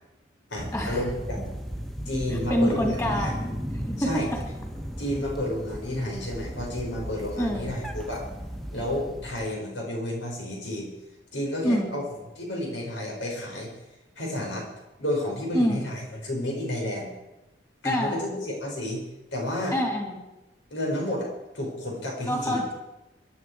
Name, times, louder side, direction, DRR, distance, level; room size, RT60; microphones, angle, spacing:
voice 1, 0.5-1.4 2.1-3.3 4.0-4.3 5.0-8.3 8.7-10.9 11.3-12.0 12.4-13.7 14.2-14.7 15.0-17.1 17.8-19.0 19.3-19.8 20.7-21.3 21.5-22.6, left 1 dB, 90° left, -1 dB, 5.6 m, -31 dB
sound 1, 0.6-9.5, equal, ahead, 1.1 m, -35 dB
voice 2, 2.5-3.4 3.8-4.4 7.4-7.7 11.6-12.0 15.5-15.9 17.8-18.3 19.7-20.2 22.3-22.7, equal, 20° left, 1 dB, 2.9 m, -26 dB
23.5 x 11.5 x 4.8 m, 0.99 s
head